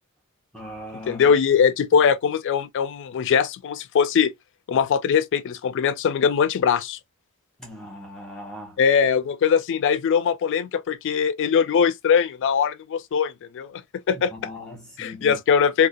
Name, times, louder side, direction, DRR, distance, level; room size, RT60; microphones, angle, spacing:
voice 1, 0.5-1.4 7.6-9.1 14.1-15.4, left 1 dB, 5° left, 0.8 m, -39 dB
voice 2, 1.1-4.3 4.7-7.0 8.8-14.3 15.0-15.9, left 7 dB, 60° left, 0.3 m, -21 dB
2.5 x 2.2 x 2.2 m
head